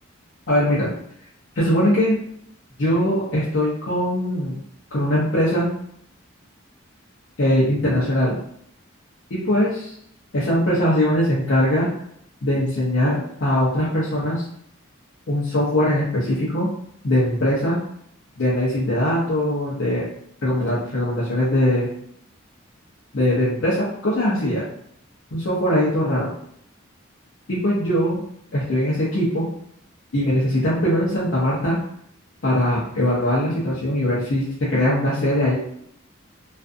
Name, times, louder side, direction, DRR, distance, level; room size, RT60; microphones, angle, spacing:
voice 1, 0.5-0.9 1.5-2.2 2.8-4.6 4.9-5.7 7.4-8.4 9.3-9.9 10.3-11.9 12.4-14.4 15.3-16.7 17.0-17.8 18.4-20.0 20.4-21.9 23.1-24.6 25.3-26.3 27.5-28.2 28.5-29.5 30.1-31.8 32.4-35.5, left 1 dB, 65° left, -8 dB, 0.6 m, -21 dB
2.5 x 2.4 x 2.5 m, 0.69 s
head